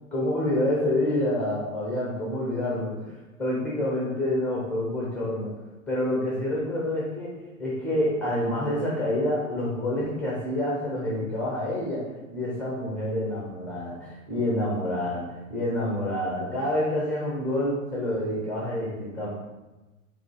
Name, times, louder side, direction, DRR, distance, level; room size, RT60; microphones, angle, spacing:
voice 1, 0.1-5.5 5.9-19.3, left 1 dB, 5° left, -5 dB, 0.4 m, -28 dB
3.9 x 2.3 x 4.5 m, 1.1 s
figure-of-eight pair, 105°, 42 cm